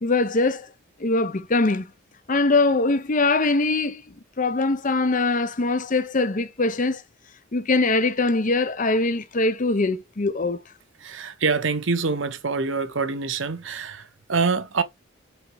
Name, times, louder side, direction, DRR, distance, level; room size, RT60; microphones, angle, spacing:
voice 1, 0.0-0.7 1.0-1.9 2.3-4.0 4.4-7.0 7.5-10.6, left 3 dB, 40° left, 0.7 m, -22 dB
voice 2, 11.0-14.8, right 4 dB, 60° right, 0.9 m, -25 dB
6.5 x 4.2 x 4.6 m
head